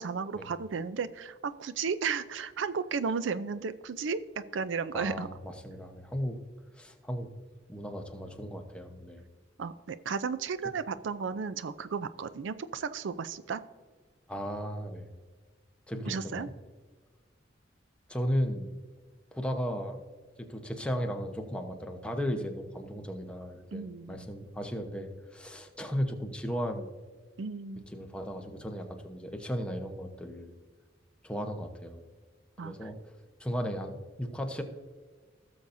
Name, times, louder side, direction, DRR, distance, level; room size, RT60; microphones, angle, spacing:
voice 1, 0.0-5.3 9.6-13.6 16.0-16.5 23.7-24.3 27.4-27.8 32.6-32.9, right 5 dB, 90° right, 13 dB, 0.5 m, -34 dB
voice 2, 4.9-6.4 6.7-7.3 7.7-9.3 14.3-15.1 15.9-16.5 18.1-18.8 19.3-20.0 20.4-26.9 27.9-30.5 31.2-32.0 32.6-33.1 33.4-34.6, equal, 5° left, 3 dB, 0.9 m, -35 dB
17.5 x 7.0 x 2.6 m, 1.4 s
head